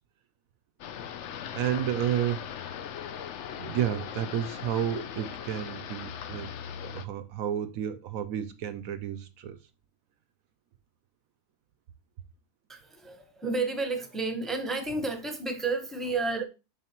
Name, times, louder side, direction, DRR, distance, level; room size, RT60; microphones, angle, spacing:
sound 1, 0.8-7.0, left 8 dB, 60° left, 0.8 m, -39 dB
voice 1, 1.5-2.5 3.6-6.5 6.8-9.6, right 10 dB, 70° right, 1.0 m, -31 dB
voice 2, 12.7-16.4, right 3 dB, ahead, 0.9 m, -31 dB
7.2 x 5.5 x 3.0 m
omnidirectional pair, 1.6 m